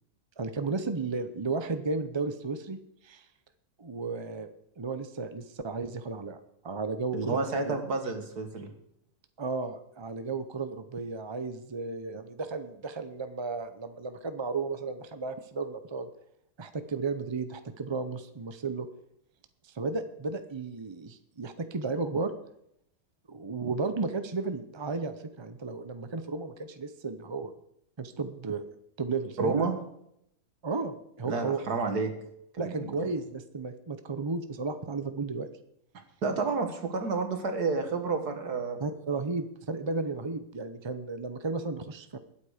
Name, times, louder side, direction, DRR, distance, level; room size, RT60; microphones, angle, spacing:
voice 1, 0.4-2.8 3.0-3.3 3.8-4.5 4.8-7.7 9.4-16.1 16.6-18.9 19.6-22.3 23.3-27.5 28.0-28.6 29.0-29.6 30.6-31.6 32.6-35.5 38.8-42.2, right 4 dB, 35° right, 10 dB, 0.4 m, -34 dB
voice 2, 7.1-8.7 29.4-29.8 31.2-32.1 32.6-32.9 36.2-38.8, right 4 dB, 80° right, 6 dB, 2.3 m, -30 dB
21.0 x 8.4 x 5.0 m, 0.76 s
omnidirectional pair, 1.7 m